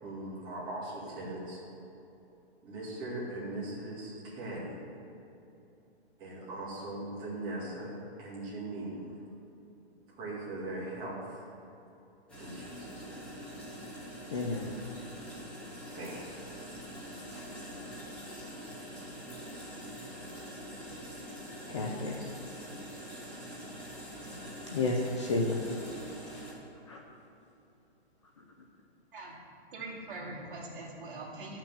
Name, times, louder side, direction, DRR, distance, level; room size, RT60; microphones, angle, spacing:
voice 1, 0.0-1.6 2.6-4.9 6.2-9.1 10.2-11.4 12.4-13.3 15.0-15.1 15.9-16.3, right 1 dB, 15° right, -8 dB, 2.2 m, -40 dB
sound 1, 12.3-26.5, equal, 5° left, 1.3 m, -44 dB
voice 2, 14.3-14.7 17.3-17.4 21.7-22.1 24.7-26.5 26.9-27.0, left 2 dB, 30° left, 0 dB, 0.6 m, -32 dB
voice 3, 29.7-31.6, right 2 dB, 55° right, -4 dB, 2.4 m, -42 dB
10.5 x 5.9 x 7.0 m, 2.9 s
hypercardioid pair, 175°, 32 cm